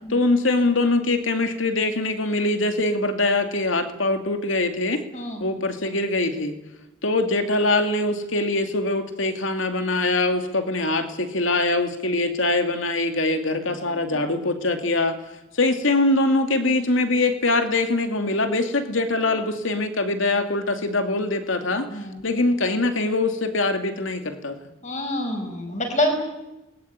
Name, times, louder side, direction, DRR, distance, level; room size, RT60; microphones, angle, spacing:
voice 1, 0.1-5.0 5.4-6.6 7.0-15.2 15.5-21.9 22.2-24.6, left 2 dB, 85° left, 7 dB, 2.5 m, -23 dB
voice 2, 5.1-5.5 13.8-14.2 19.1-19.3 21.9-22.2 24.8-26.2, left 1 dB, 40° left, 4 dB, 5.8 m, -27 dB
22.5 x 20.5 x 9.6 m, 0.98 s
head